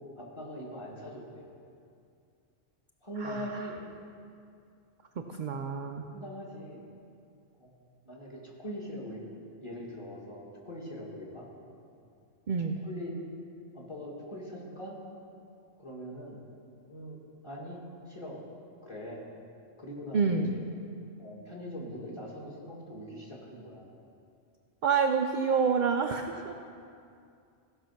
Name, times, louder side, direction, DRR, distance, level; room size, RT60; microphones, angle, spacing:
voice 1, 0.2-1.4 3.0-3.8 6.1-6.8 7.6-7.7 8.0-9.2 9.6-11.4 12.8-13.1 13.7-15.0 15.8-16.4 16.9-17.2 17.4-17.8 18.1-18.4 18.8-19.2 19.8-20.6 21.2-23.9 24.9-25.0, equal, 20° left, -4 dB, 2.0 m, -41 dB
voice 2, 5.2-6.1 12.5-12.8 20.1-20.6 24.8-26.5, right 5 dB, 60° right, 4 dB, 0.5 m, -28 dB
15.5 x 5.7 x 5.8 m, 2.4 s
omnidirectional pair, 1.3 m